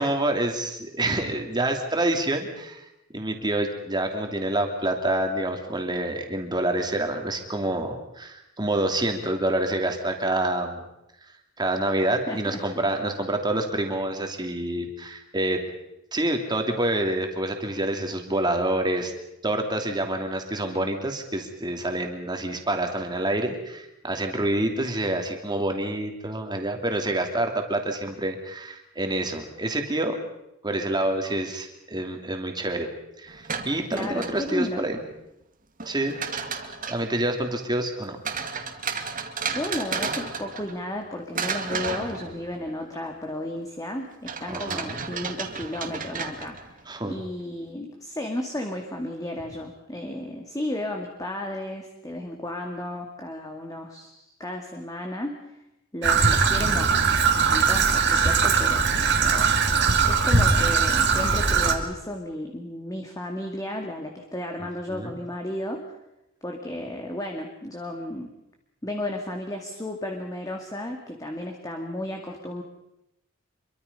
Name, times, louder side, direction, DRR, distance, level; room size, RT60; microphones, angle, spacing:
voice 1, 0.0-2.9 3.1-10.9 11.6-15.6 16.1-19.1 19.4-30.2 30.6-32.9 33.2-35.0 35.9-36.2 36.9-38.2 44.5-45.0 46.9-47.1 64.6-65.1, right 1 dB, 20° right, 4 dB, 2.9 m, -27 dB
voice 2, 12.3-12.6 33.9-34.9 39.1-46.6 47.0-55.6 55.9-56.9 57.5-58.8 59.2-59.5 60.0-65.8 66.4-68.3 68.8-72.6, left 1 dB, 15° left, 3 dB, 2.1 m, -33 dB
sound 1, 33.3-34.8 35.8-37.1 38.2-41.0 41.3-42.7 44.3-46.8, right 5 dB, 40° right, 2.2 m, -33 dB
Traffic noise roadway noise / Trickle dribble, 56.0-61.8, right 5 dB, 55° right, 2.5 m, -20 dB
26.0 x 23.5 x 5.5 m, 0.88 s
head